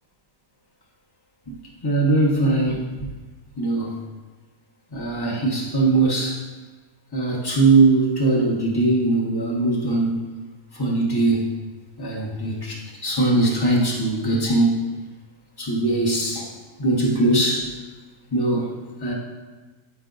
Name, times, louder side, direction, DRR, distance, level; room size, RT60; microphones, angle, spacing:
voice 1, 1.8-3.1 3.6-4.0 4.9-6.4 7.1-10.2 10.7-11.5 12.0-14.8 15.6-16.5 16.8-17.7 18.3-18.7 19.0-19.1, right 2 dB, 35° left, -3 dB, 0.3 m, -21 dB
9.7 x 4.5 x 3.9 m, 1.3 s
omnidirectional pair, 1.8 m